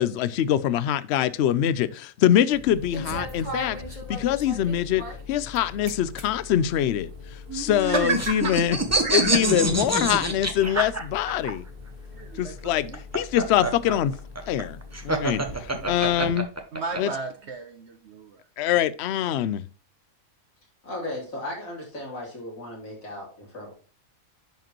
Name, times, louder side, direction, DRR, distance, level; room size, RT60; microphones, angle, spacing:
voice 1, 0.0-3.8 4.1-7.1 7.5-8.8 9.1-11.6 12.4-12.9 13.1-14.1 14.5-14.8 15.0-16.5 17.0-17.1 18.6-19.6, left 10 dB, 60° left, 0.7 m, -24 dB
sound 1, 2.5-16.3, left 1 dB, 35° right, 1.7 m, -40 dB
sound 2, 7.5-11.5 12.8-17.0, right 1 dB, 15° right, 0.9 m, -26 dB
voice 2, 7.8-8.5 9.0-9.4 12.1-13.0 15.7-15.9 16.7-18.4, right 4 dB, 60° right, 1.1 m, -32 dB
voice 3, 20.8-23.7, left 1 dB, 80° left, 3.7 m, -36 dB
10.5 x 5.0 x 2.9 m
omnidirectional pair, 1.4 m